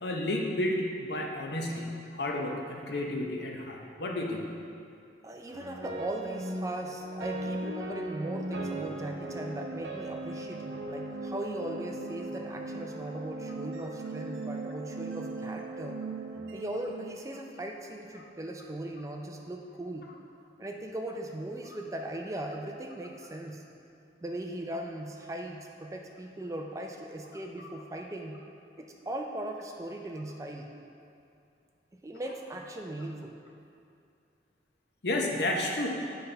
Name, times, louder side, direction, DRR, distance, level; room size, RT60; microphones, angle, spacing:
voice 1, 0.0-4.5 35.0-35.9, left 1 dB, 65° left, 0 dB, 0.7 m, -31 dB
voice 2, 5.2-16.0 16.5-20.1 20.6-23.6 24.2-28.4 28.8-30.7 31.9-33.4, right 1 dB, 15° right, 2 dB, 0.4 m, -39 dB
sound 1, 5.5-17.8, right 2 dB, 85° right, 0.7 m, -38 dB
8.0 x 5.4 x 3.3 m, 2.5 s
head